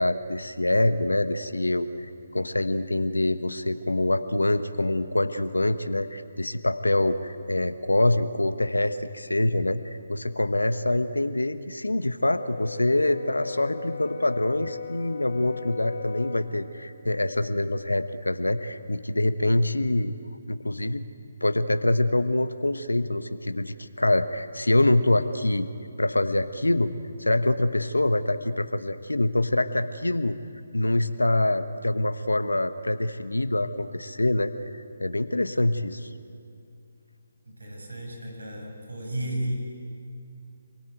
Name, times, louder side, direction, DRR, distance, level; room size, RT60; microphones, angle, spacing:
voice 1, 0.0-20.2 20.5-21.0 21.4-25.7 26.0-26.9 27.2-30.4 30.7-36.1, left 1 dB, 85° left, 11 dB, 1.2 m, -25 dB
Brass instrument, 12.2-16.5, left 4 dB, 55° left, 3.9 m, -37 dB
voice 2, 37.5-39.5, right 1 dB, 80° right, 2 dB, 7.2 m, -33 dB
25.5 x 22.5 x 9.3 m, 2.5 s
figure-of-eight pair, 145°, 0 cm